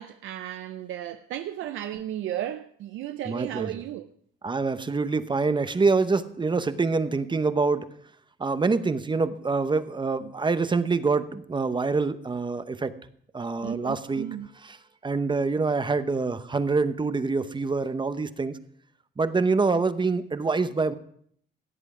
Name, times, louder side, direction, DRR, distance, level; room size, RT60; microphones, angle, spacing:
voice 1, 0.0-4.0 13.6-14.5, right 12 dB, 85° right, 0.6 m, -34 dB
voice 2, 3.3-3.8 4.4-7.9 8.4-12.9 13.3-14.3 14.6-14.8 15.0-18.6 19.2-20.9, right 4 dB, 25° right, 0.8 m, -25 dB
16.0 x 8.1 x 4.9 m
cardioid pair, 90°, 20 cm